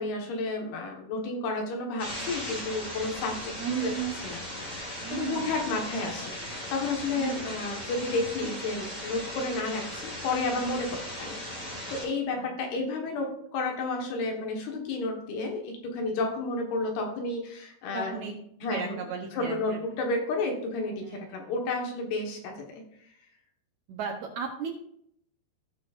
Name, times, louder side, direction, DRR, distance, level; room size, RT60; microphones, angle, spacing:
voice 1, 0.0-3.9 4.2-18.2 18.6-19.0 19.3-22.8, left 3 dB, 75° left, 1 dB, 3.4 m, -32 dB
sound 1, 2.0-12.0, left 1 dB, 20° left, 2.6 m, -38 dB
voice 2, 3.6-4.1 5.0-5.6 7.1-7.8 12.3-12.5 17.9-18.3 18.7-19.8 21.0-21.5 23.9-24.7, right 7 dB, 90° right, 1 dB, 1.6 m, -35 dB
16.5 x 6.1 x 2.5 m, 0.70 s
omnidirectional pair, 4.7 m